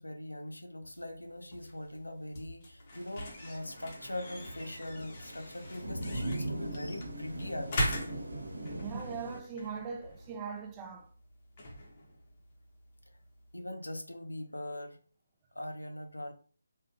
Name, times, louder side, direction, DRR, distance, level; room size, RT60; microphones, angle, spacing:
voice 1, 0.0-8.1 13.5-15.0 15.5-16.3, left 1 dB, 80° left, 0.6 m, -41 dB
sound 1, 0.9-13.6, equal, 30° left, 0.7 m, -42 dB
Thunder / Rain, 2.9-9.4, right 1 dB, 65° right, 1.0 m, -41 dB
voice 2, 8.8-11.1, right 6 dB, 15° right, 0.4 m, -40 dB
3.3 x 2.1 x 2.4 m
figure-of-eight pair, 150°, 0 cm